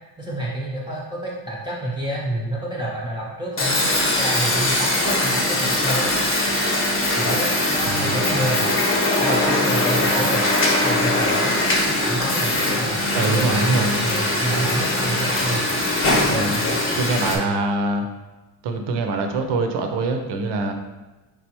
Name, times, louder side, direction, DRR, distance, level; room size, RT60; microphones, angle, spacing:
voice 1, 0.2-6.1 7.2-8.6 9.2-10.5 10.8-11.6 12.0-15.6 16.3-17.0 17.3-17.5, right 1 dB, 10° right, -6 dB, 0.6 m, -28 dB
sound 1, 3.6-17.4, left 1 dB, 25° left, 0.9 m, -21 dB
voice 2, 7.9-8.4 13.1-13.9 16.2-16.5 17.0-18.1 18.6-20.7, right 3 dB, 55° right, 5 dB, 0.6 m, -24 dB
3.6 x 3.4 x 2.9 m, 1.1 s
supercardioid pair, 85°, 49 cm